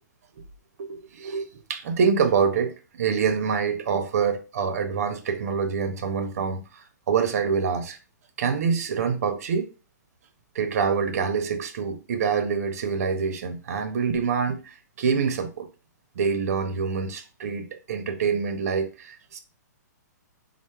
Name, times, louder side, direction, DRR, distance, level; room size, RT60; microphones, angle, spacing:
voice 1, 0.8-8.0 8.4-9.7 10.5-15.7 16.2-19.4, right 6 dB, 55° right, 0.5 m, -26 dB
3.2 x 2.0 x 3.1 m
hypercardioid pair, 170°, 10 cm